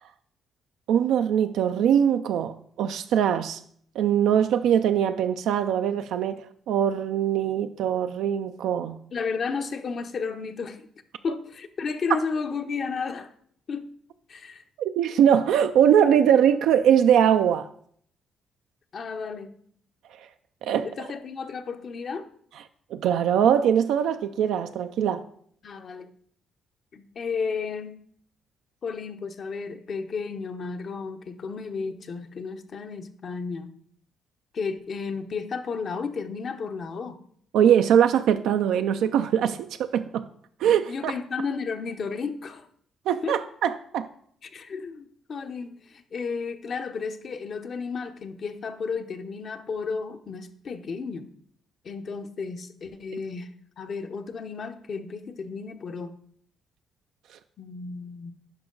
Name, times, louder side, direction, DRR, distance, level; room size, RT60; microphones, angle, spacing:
voice 1, 0.9-3.6 4.0-6.4 6.7-9.0 14.8-17.7 20.6-20.9 22.9-25.2 37.5-40.2 40.6-41.1 43.1-44.1, right 9 dB, 85° right, 0.4 m, -22 dB
voice 2, 9.1-10.9 11.2-13.3 13.7-13.9 14.3-14.6 18.9-19.6 20.7-22.3 25.6-26.1 26.9-28.0 28.8-33.7 34.5-37.2 40.8-42.7 43.2-43.4 44.4-51.3 51.8-56.1 57.6-58.3, left 5 dB, 55° left, 0.8 m, -33 dB
10.5 x 5.2 x 3.8 m
cardioid pair, 90°, 0 cm